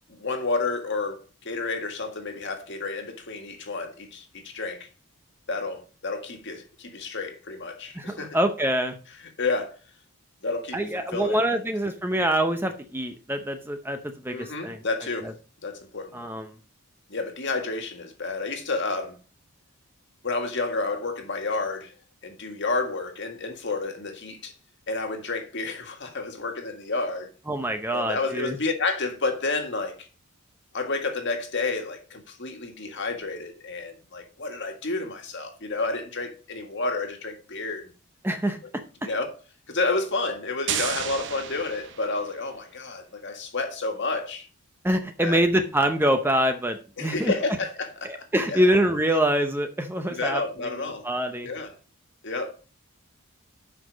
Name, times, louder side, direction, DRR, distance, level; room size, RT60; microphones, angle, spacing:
voice 1, 0.1-4.9 5.5-8.4 9.4-9.8 10.4-11.4 14.3-15.3 15.6-16.1 17.1-19.2 20.2-21.9 22.2-24.5 24.9-27.3 27.9-30.1 30.7-37.9 39.0-39.3 39.7-44.5 45.2-45.4 47.0-48.6 50.1-51.0 51.4-51.7 52.2-52.5, left 3 dB, 50° left, 1.7 m, -30 dB
voice 2, 7.9-8.9 10.7-14.8 15.2-15.3 16.1-16.5 27.5-28.6 38.2-38.6 44.8-47.3 48.0-50.7 51.0-51.5, right 1 dB, 10° right, 0.7 m, -25 dB
sound 1, 40.7-42.5, right 9 dB, 55° right, 0.8 m, -32 dB
8.1 x 5.8 x 5.1 m
head